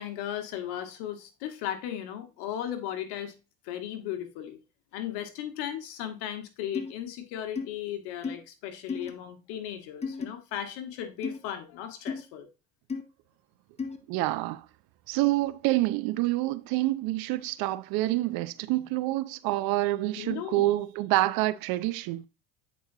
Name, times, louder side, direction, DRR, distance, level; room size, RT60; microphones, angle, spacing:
voice 1, 0.0-3.3 3.6-4.6 4.9-12.5 18.8-18.9 20.1-20.7, left 10 dB, 65° left, 1.4 m, -36 dB
sound 1, 6.7-6.9 7.5-7.7 8.2-8.4 8.9-9.1 10.0-10.3 11.2-11.4 12.1-12.2 12.9-13.0 13.8-14.0, left 5 dB, 15° left, 0.6 m, -33 dB
voice 2, 14.1-14.6 15.1-22.3, right 17 dB, 55° right, 0.6 m, -27 dB
8.2 x 4.4 x 2.7 m
hypercardioid pair, 90°, 44 cm